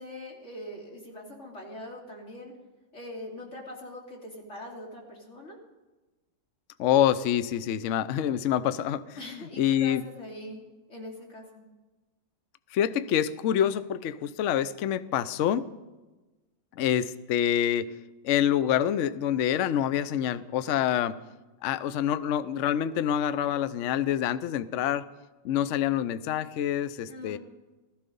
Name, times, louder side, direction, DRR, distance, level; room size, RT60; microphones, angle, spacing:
voice 1, 0.0-2.5 2.9-5.6 9.2-11.6 27.1-27.4, left 1 dB, 40° left, -1 dB, 3.2 m, -42 dB
voice 2, 6.8-9.2 9.6-10.0 12.7-15.7 16.8-17.9 18.2-21.2 21.6-25.1 25.4-27.4, left 10 dB, 70° left, 15 dB, 0.7 m, -26 dB
16.0 x 14.0 x 5.4 m, 1.2 s
omnidirectional pair, 2.0 m